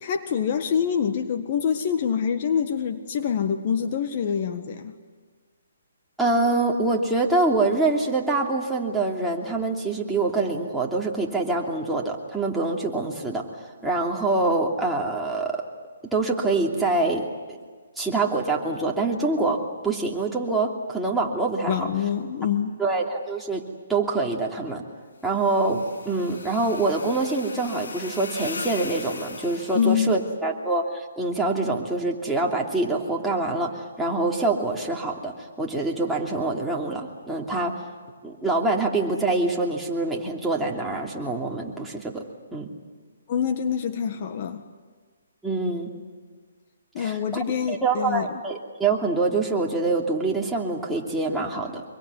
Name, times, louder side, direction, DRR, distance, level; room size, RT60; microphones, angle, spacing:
voice 1, 0.0-4.9 21.7-22.8 29.7-30.2 43.3-44.6 46.9-48.3, left 7 dB, 40° left, 7 dB, 1.6 m, -25 dB
voice 2, 6.2-13.4 13.8-15.6 16.1-17.3 18.0-21.9 22.8-23.6 23.9-24.8 25.2-37.8 38.2-42.2 42.5-42.7 45.4-45.9 47.0-51.8, right 3 dB, 5° right, -3 dB, 2.9 m, -25 dB
sound 1, 25.3-30.2, left 3 dB, 70° left, 4.0 m, -39 dB
25.5 x 23.5 x 9.7 m, 1.5 s
hypercardioid pair, 150°, 0 cm